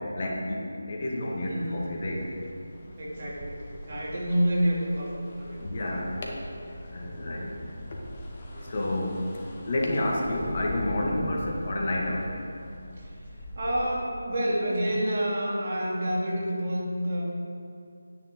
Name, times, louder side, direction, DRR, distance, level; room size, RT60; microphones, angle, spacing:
voice 1, 0.0-2.2 5.6-6.1 6.9-7.6 8.7-9.3 9.7-12.3, left 1 dB, 40° left, -2 dB, 2.0 m, -29 dB
sound 1, 1.0-13.8, equal, 25° left, 1.3 m, -43 dB
voice 2, 1.5-1.8 3.0-6.3 7.0-7.2 8.5-8.7 13.0-13.2 13.6-17.2, equal, 45° right, -4 dB, 2.7 m, -29 dB
11.0 x 9.7 x 3.8 m, 2.3 s
figure-of-eight pair, 160°, 0 cm